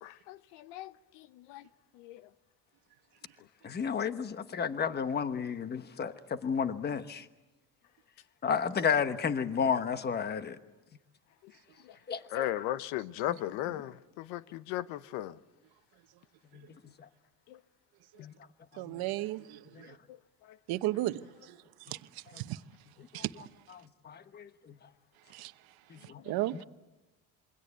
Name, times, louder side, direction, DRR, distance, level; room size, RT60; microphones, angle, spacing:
voice 1, 0.0-1.6 2.0-2.2 12.3-15.4 17.5-17.6 18.2-18.3 26.3-26.4, left 13 dB, 85° left, 1.0 m, -37 dB
voice 2, 3.6-7.2 8.4-10.6 12.1-12.5 18.9-19.0 22.3-22.4 23.7-24.5 25.9-26.2 26.5-26.6, left 6 dB, 25° left, 1.1 m, -32 dB
voice 3, 18.8-19.6 20.7-21.2 22.5-22.6 23.1-23.3 25.3-25.5 26.3-26.6, right 17 dB, 65° right, 1.0 m, -32 dB
27.0 x 23.5 x 8.2 m
cardioid pair, 135°, 39 cm